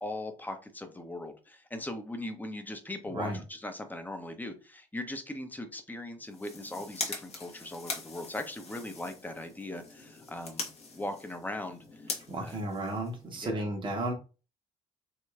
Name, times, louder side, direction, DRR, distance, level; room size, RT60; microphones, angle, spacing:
voice 1, 0.0-10.7 11.0-12.6 13.3-13.6, left 1 dB, 10° left, 6 dB, 0.7 m, -39 dB
sound 1, 6.2-13.5, left 3 dB, 40° left, 1.0 m, -42 dB
voice 2, 12.3-14.1, right 1 dB, 30° right, 1 dB, 0.9 m, -33 dB
3.0 x 2.9 x 2.3 m, 0.32 s
figure-of-eight pair, 50°, 17 cm